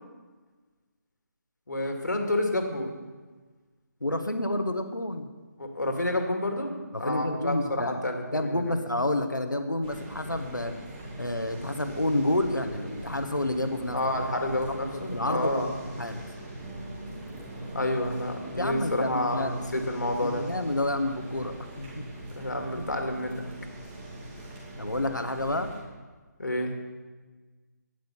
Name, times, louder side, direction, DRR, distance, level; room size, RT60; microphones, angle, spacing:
voice 1, 1.7-2.9 5.6-6.7 7.0-8.6 13.9-15.7 17.7-20.4 22.4-23.4 26.4-26.7, left 1 dB, 70° left, 4 dB, 2.1 m, -29 dB
voice 2, 4.0-5.3 6.9-7.9 8.3-10.7 11.2-14.0 15.1-16.2 18.5-19.5 20.2-22.0 24.8-25.8, left 1 dB, 85° left, 7 dB, 1.3 m, -29 dB
sound 1, 9.8-25.8, right 1 dB, 15° right, 2.3 m, -42 dB
11.5 x 9.4 x 5.6 m, 1.3 s
figure-of-eight pair, 150°, 10 cm